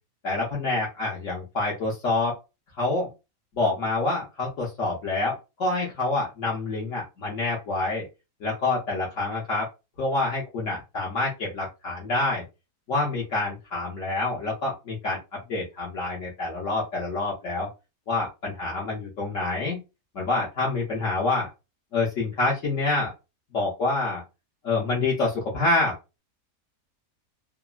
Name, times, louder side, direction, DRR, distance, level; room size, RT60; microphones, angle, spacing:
voice 1, 0.2-2.4 2.8-3.1 3.6-8.0 8.4-9.7 10.0-12.4 12.9-17.7 18.1-19.8 20.1-21.5 21.9-23.1 23.5-24.2 24.6-26.2, left 2 dB, 65° left, -4 dB, 1.2 m, -27 dB
3.5 x 2.0 x 2.3 m, 0.25 s
omnidirectional pair, 1.5 m